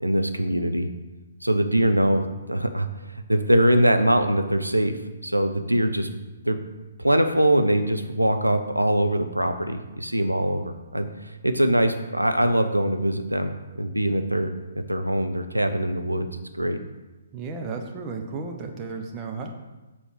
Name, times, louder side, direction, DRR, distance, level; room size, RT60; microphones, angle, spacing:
voice 1, 0.0-0.9 1.4-2.9 3.3-5.0 5.2-6.1 6.4-6.6 7.0-14.5 14.9-16.3 16.5-16.8, right 1 dB, 90° right, 7 dB, 0.7 m, -22 dB
voice 2, 17.3-19.5, right 4 dB, 20° right, 2 dB, 1.0 m, -33 dB
7.1 x 4.4 x 6.5 m, 1.1 s
figure-of-eight pair, 130°, 0 cm